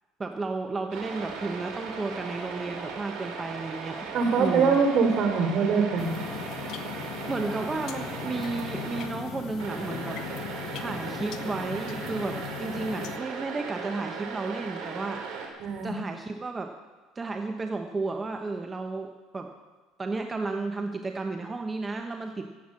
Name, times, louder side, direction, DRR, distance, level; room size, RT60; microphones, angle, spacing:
voice 1, 0.2-4.1 4.4-4.8 7.3-10.2 10.8-16.7 17.1-19.5 20.0-22.5, right 3 dB, 20° right, 5 dB, 1.0 m, -33 dB
sound 1, 0.9-9.1 9.6-15.5, right 5 dB, 70° right, 2.8 m, -38 dB
voice 2, 4.1-6.1 15.6-15.9, right 5 dB, 55° right, 5 dB, 3.2 m, -23 dB
sound 2, 6.0-13.2, left 10 dB, 60° left, 1.1 m, -38 dB
15.0 x 8.1 x 8.6 m, 1.3 s
supercardioid pair, 105°, 0 cm